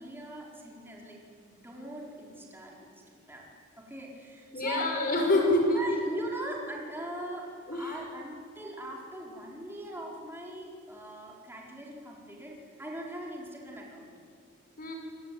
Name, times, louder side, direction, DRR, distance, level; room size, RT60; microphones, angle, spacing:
voice 1, 0.0-3.5 3.8-5.0 5.7-14.1, right 1 dB, 10° right, -2 dB, 4.8 m, -41 dB
voice 2, 4.5-5.8 7.7-8.0 14.8-14.9, left 1 dB, 45° left, 2 dB, 5.7 m, -26 dB
28.0 x 18.5 x 9.3 m, 2.3 s
head